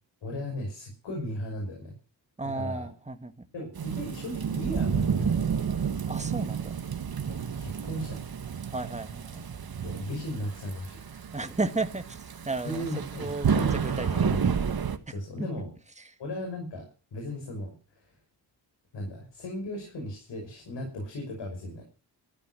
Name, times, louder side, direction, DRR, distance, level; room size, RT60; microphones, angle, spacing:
voice 1, 0.2-1.9 2.5-2.9 3.5-5.4 7.3-8.2 9.8-11.0 12.6-14.5 14.8-15.7 16.2-16.8 17.1-18.1 18.9-21.8, left 1 dB, 85° left, 5.9 m, -36 dB
voice 2, 2.4-3.5 6.1-6.8 8.7-9.5 11.3-12.9 13.2-14.4 15.1-15.5 16.0-16.2, right 3 dB, 15° right, 1.8 m, -34 dB
Thunderstorm / Rain, 3.7-15.0, right 7 dB, 55° right, 1.7 m, -30 dB
13.5 x 12.0 x 6.3 m
cardioid pair, 85°, 43 cm